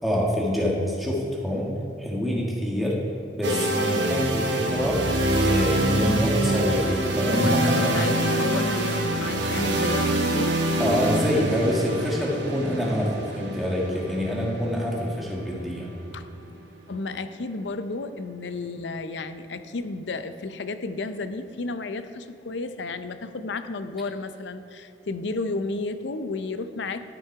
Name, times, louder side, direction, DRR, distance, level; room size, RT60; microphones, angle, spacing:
voice 1, 0.0-1.7 2.0-3.0 3.3-5.0 5.3-7.9 10.8-15.9, equal, ahead, -5 dB, 1.7 m, -26 dB
sound 1, 3.4-17.3, right 1 dB, 90° right, 1.2 m, -26 dB
voice 2, 7.3-10.6 16.1-16.3 16.9-27.0, left 3 dB, 85° left, 10 dB, 0.6 m, -32 dB
12.5 x 6.0 x 4.7 m, 2.6 s
head